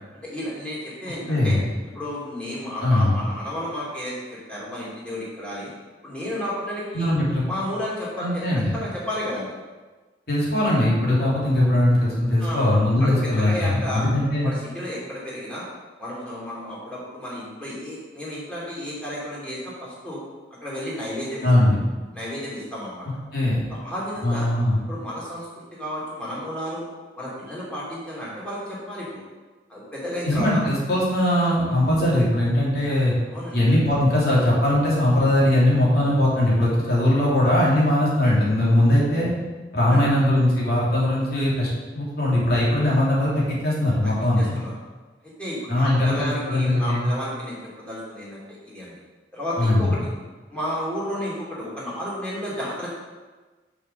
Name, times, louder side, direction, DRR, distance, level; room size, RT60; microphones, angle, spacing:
voice 1, 0.2-1.6 1.9-4.1 4.5-5.7 6.0-7.1 7.5-8.4 8.7-9.5 12.4-12.7 13.0-14.0 14.4-15.6 16.0-20.2 20.6-21.5 22.1-23.0 23.7-24.5 24.9-25.5 25.8-26.8 27.2-29.2 29.7-30.6 33.3-33.6 39.8-40.0 44.0-44.7 45.4-49.0 49.3-50.1 50.5-52.9, left 1 dB, 5° left, -7 dB, 3.0 m, -32 dB
voice 2, 1.2-1.6 2.8-3.2 6.9-7.4 8.2-8.7 10.3-14.5 21.4-21.8 23.3-23.6 24.2-24.8 30.2-33.1 33.5-39.3 39.7-41.7 41.9-44.6 45.7-47.1 49.6-49.9, left 1 dB, 55° left, -6 dB, 3.0 m, -20 dB
6.6 x 6.3 x 6.5 m, 1.3 s
head